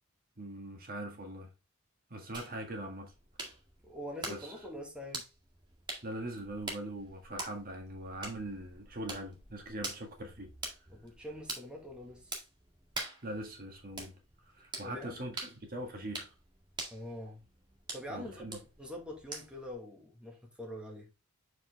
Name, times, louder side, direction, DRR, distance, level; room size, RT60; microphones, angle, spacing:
voice 1, 0.4-1.5 2.1-3.1 4.3-4.6 6.0-10.5 13.2-14.1 14.5-16.3 18.1-18.6, right 1 dB, 45° right, 1.6 m, -41 dB
sound 1, 2.3-19.7, right 2 dB, 20° right, 1.9 m, -46 dB
voice 2, 3.8-5.3 10.9-12.3 14.8-15.2 16.9-17.4 17.9-21.1, left 1 dB, 5° right, 1.8 m, -44 dB
7.1 x 5.1 x 3.3 m
head